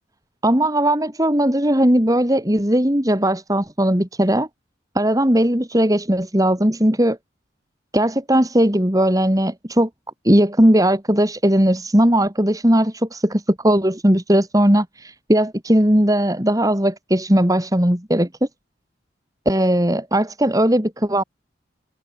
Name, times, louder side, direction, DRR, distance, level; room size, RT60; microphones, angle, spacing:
voice 1, 0.4-4.5 4.9-7.2 7.9-9.9 10.2-18.3 19.4-21.2, right 1 dB, 20° right, 3.2 m, -18 dB
head